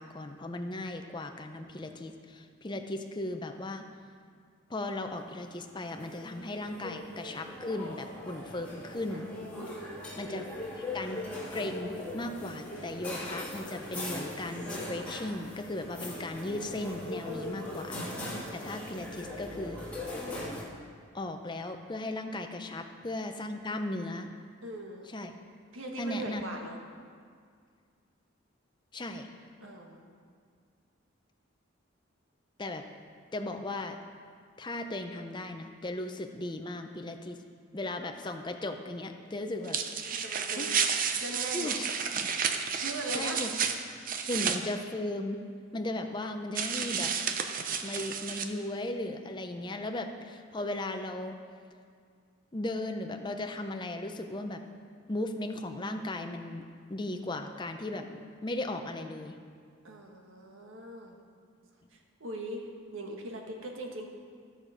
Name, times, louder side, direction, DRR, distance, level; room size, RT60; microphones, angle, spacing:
voice 1, 0.0-3.8 4.7-9.3 10.2-10.5 10.7-11.2 11.5-18.0 18.5-19.8 21.1-24.3 25.1-25.3 26.0-26.4 28.9-29.3 32.6-32.8 33.3-34.0 34.6-37.4 37.7-39.8 40.6-40.7 41.5-42.3 43.1-43.5 44.3-45.4 45.7-47.1 47.8-51.4 52.5-54.6 55.1-56.6 56.9-59.4, left 1 dB, 20° left, 5 dB, 0.6 m, -36 dB
sound 1, 5.5-20.6, left 1 dB, 5° left, 1.9 m, -40 dB
voice 2, 9.6-10.0 17.3-17.7 24.6-25.1 25.7-26.8 29.6-30.1 40.1-40.8 41.2-41.8 42.8-43.4 59.8-61.2 61.9-64.1, right 1 dB, 80° right, 2 dB, 1.4 m, -40 dB
sound 2, 39.6-44.6 46.5-48.4, right 6 dB, 45° right, 0.6 m, -31 dB
14.0 x 6.5 x 4.9 m, 2.1 s
head